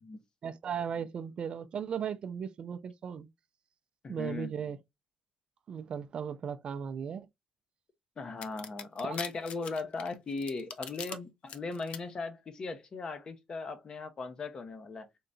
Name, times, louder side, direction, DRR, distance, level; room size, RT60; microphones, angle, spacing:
voice 1, 0.4-3.3 4.1-4.8 5.7-7.3 9.0-9.2, right 7 dB, 50° right, 0.5 m, -36 dB
voice 2, 4.0-4.5 8.2-15.1, left 3 dB, 40° left, 0.8 m, -38 dB
sound 1, 8.4-11.2 11.5-12.0, left 7 dB, 60° left, 0.5 m, -41 dB
3.8 x 3.3 x 2.6 m
cardioid pair, 100°, 2 cm